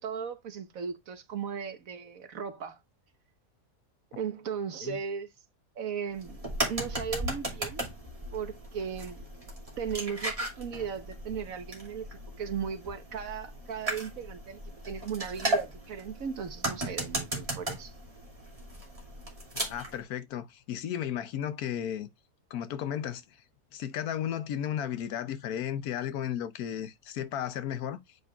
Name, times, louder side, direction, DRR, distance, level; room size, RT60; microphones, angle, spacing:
voice 1, 0.0-2.8 4.2-5.3 5.7-6.4 6.7-7.8 8.3-9.2 9.8-17.9, right 7 dB, 60° right, 1.4 m, -37 dB
sound 1, 6.2-20.0, right 1 dB, 20° right, 2.5 m, -36 dB
voice 2, 19.5-22.1 22.5-23.2 23.7-28.0, left 10 dB, 75° left, 1.2 m, -34 dB
8.1 x 5.3 x 2.3 m
omnidirectional pair, 1.6 m